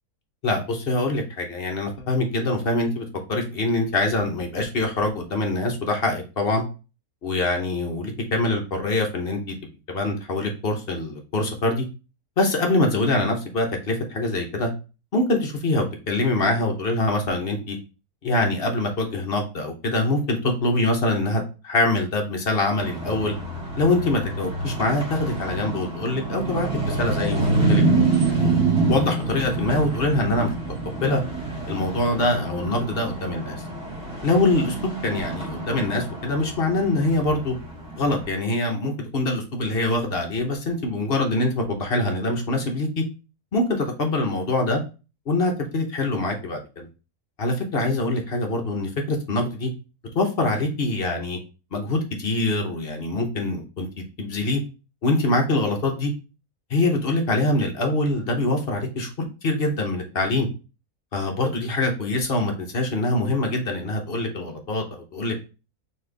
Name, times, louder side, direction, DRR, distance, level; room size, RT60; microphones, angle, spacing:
voice 1, 0.4-6.6 7.2-9.5 9.9-11.8 12.4-14.7 15.1-17.8 18.2-23.3 23.8-28.5 28.9-30.5 30.8-31.2 31.7-33.6 34.2-37.5 38.0-43.0 43.5-44.8 45.3-46.9 47.4-49.7 50.1-51.4 51.7-54.6 55.0-56.1 56.7-59.1 59.4-60.5 61.1-65.4, left 2 dB, 45° left, 2 dB, 0.9 m, -24 dB
sound 1, 22.8-38.3, right 3 dB, 5° right, 1.5 m, -26 dB
4.2 x 3.3 x 3.3 m, 0.32 s
omnidirectional pair, 1.6 m